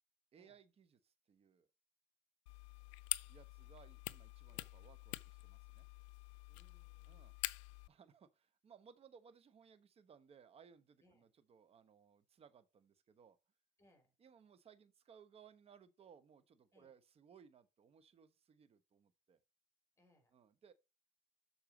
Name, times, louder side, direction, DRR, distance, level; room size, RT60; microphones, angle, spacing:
voice 1, 0.3-1.7 3.3-5.9 7.1-7.4 7.9-13.4 14.2-19.4 20.3-20.7, right 7 dB, 40° right, 1.1 m, -64 dB
sound 1, 2.5-7.9, left 21 dB, 90° left, 0.4 m, -46 dB
voice 2, 6.5-7.2 11.0-11.3 13.8-14.1 16.7-16.9 20.0-20.3, left 1 dB, 15° left, 3.6 m, -72 dB
6.9 x 4.4 x 5.1 m
supercardioid pair, 85°, 15 cm